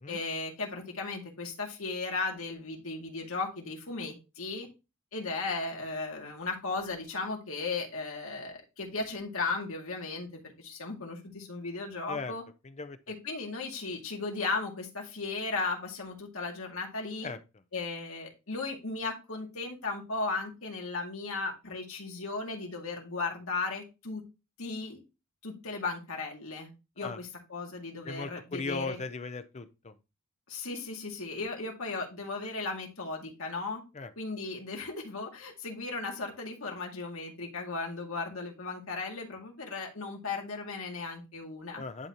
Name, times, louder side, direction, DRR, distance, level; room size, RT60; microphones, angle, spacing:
voice 1, 0.1-4.7 5.1-12.4 13.1-17.3 17.7-24.2 24.6-25.0 25.4-26.7 27.0-29.0 30.5-33.8 34.2-41.8, left 3 dB, 70° left, 2.1 m, -36 dB
voice 2, 28.0-29.9 33.9-34.1 41.8-42.1, left 3 dB, 30° left, 0.6 m, -37 dB
10.5 x 4.1 x 2.9 m
head